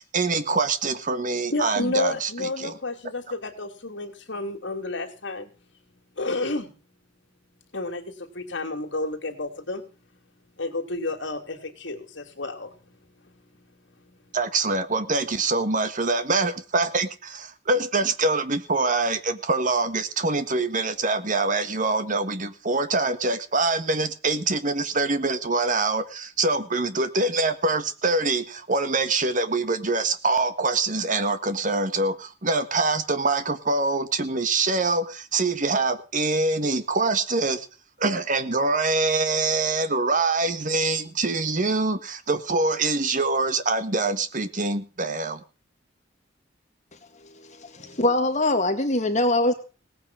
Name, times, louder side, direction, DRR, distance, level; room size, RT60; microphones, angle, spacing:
voice 1, 0.0-2.8 14.3-37.7 38.0-45.4, right 3 dB, 45° right, 11 dB, 1.6 m, -24 dB
voice 2, 1.5-5.5 6.2-6.7 7.7-9.8 10.6-12.7 14.0-14.1, left 2 dB, 70° left, 4 dB, 3.3 m, -31 dB
voice 3, 47.6-49.5, left 2 dB, 40° left, 6 dB, 2.1 m, -22 dB
18.0 x 9.1 x 6.3 m, 0.36 s
head